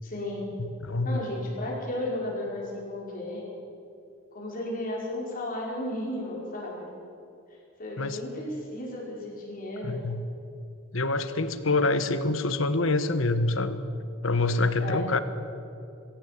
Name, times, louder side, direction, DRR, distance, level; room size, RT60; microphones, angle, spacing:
voice 1, 0.0-0.5 1.0-3.5 4.3-6.9 7.8-10.0 14.8-15.1, left 1 dB, 45° left, -3 dB, 5.5 m, -34 dB
voice 2, 0.6-1.2 8.0-8.2 9.8-10.2 10.9-13.8 14.2-15.2, left 2 dB, 70° left, 12 dB, 1.3 m, -26 dB
22.0 x 16.5 x 8.6 m, 2.7 s
head